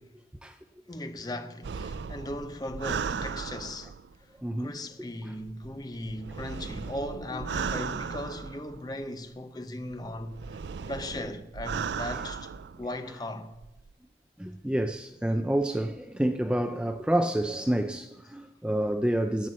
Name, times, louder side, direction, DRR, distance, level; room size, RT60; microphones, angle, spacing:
voice 1, 0.9-3.9 4.6-10.6 10.9-12.5 12.8-13.5, left 1 dB, 20° left, 0.8 m, -37 dB
sound 1, 1.6-4.2 5.4-9.0 9.9-12.9 13.5-13.9, right 6 dB, 75° right, 0.4 m, -36 dB
voice 2, 4.4-4.7 5.2-5.3 14.4-19.5, right 1 dB, 5° right, 0.4 m, -28 dB
sound 2, 6.9-9.7, equal, 65° left, 2.4 m, -49 dB
11.5 x 8.3 x 7.4 m
head